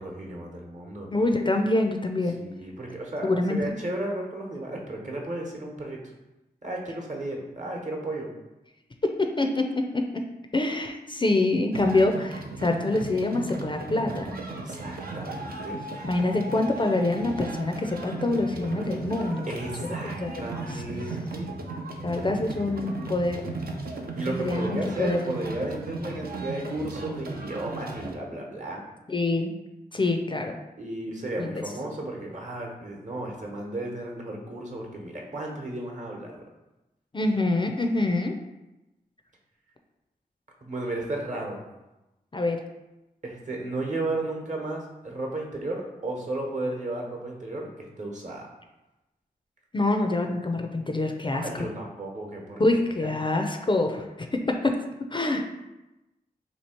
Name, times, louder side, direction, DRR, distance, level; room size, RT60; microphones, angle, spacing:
voice 1, 0.0-1.1 2.4-6.0 6.6-8.3 14.5-15.8 19.5-21.5 24.2-28.8 30.8-36.4 40.6-41.6 43.2-47.7 48.0-48.5 51.3-52.6 53.0-53.1, right 1 dB, 50° right, 0 dB, 1.0 m, -34 dB
voice 2, 1.1-2.4 3.2-3.8 9.0-10.2 10.5-14.3 16.0-19.5 20.0-20.4 20.7-20.8 22.0-23.4 24.2-25.2 29.1-29.5 29.9-30.6 31.4-31.6 37.1-38.3 42.3-42.6 49.7-51.7 52.6-54.1 54.3-54.8 55.1-55.4, left 2 dB, 30° left, 4 dB, 0.4 m, -25 dB
sound 1, 11.7-28.1, right 3 dB, 65° right, 0.6 m, -36 dB
2.9 x 2.7 x 4.3 m, 0.99 s
cardioid pair, 40°, 17 cm